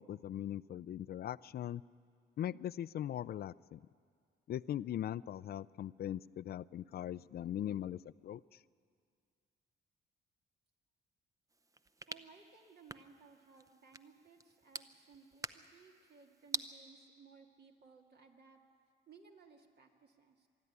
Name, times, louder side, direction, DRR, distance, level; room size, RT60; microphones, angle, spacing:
voice 1, 0.0-1.8 2.4-3.8 4.5-8.4, left 11 dB, 50° left, 19 dB, 0.4 m, -40 dB
sound 1, 11.5-16.7, right 2 dB, 15° right, 0.6 m, -47 dB
voice 2, 12.1-18.6 19.1-20.5, right 5 dB, 55° right, 2 dB, 2.3 m, -61 dB
25.0 x 11.5 x 9.6 m, 2.2 s
cardioid pair, 90°, 20 cm